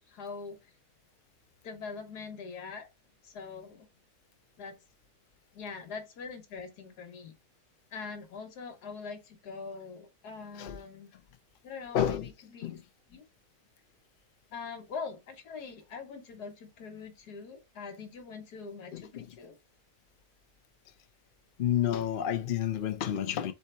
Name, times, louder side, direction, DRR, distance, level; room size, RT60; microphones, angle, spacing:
voice 1, 0.1-0.6 1.6-2.9 3.2-3.9 4.6-4.8 5.5-7.3 7.9-11.1 11.6-12.8 13.1-13.2 14.5-19.6, left 5 dB, 90° left, 1.6 m, -43 dB
voice 2, 11.9-12.3 12.6-12.8 18.9-19.3 21.6-23.5, left 10 dB, 60° left, 0.5 m, -30 dB
4.4 x 2.9 x 4.2 m
omnidirectional pair, 1.6 m